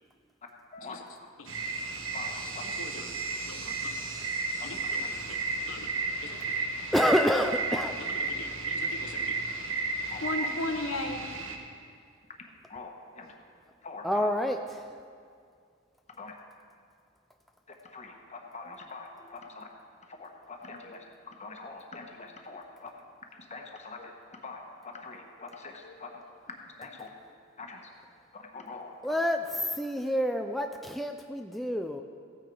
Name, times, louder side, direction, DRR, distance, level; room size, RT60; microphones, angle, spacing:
voice 1, 0.7-1.0 2.1-2.6 3.6-3.7 4.6-4.8 10.1-10.5 12.3-13.5 13.8-14.3 16.1-16.3 17.8-19.7 20.0-23.0 23.3-27.1 27.6-29.2, left 3 dB, 35° left, 2 dB, 1.2 m, -44 dB
sound 1, 1.5-11.6, right 3 dB, 70° right, 1.2 m, -33 dB
voice 2, 2.6-3.0 3.5-4.0 4.6-5.4 5.7-5.9 6.2-6.6 8.0-9.4 10.2-11.3, left 2 dB, 80° left, 5 dB, 1.0 m, -38 dB
voice 3, 6.9-8.0 14.0-14.9 29.0-32.0, equal, ahead, 4 dB, 0.3 m, -28 dB
15.0 x 8.9 x 4.7 m, 2.2 s
head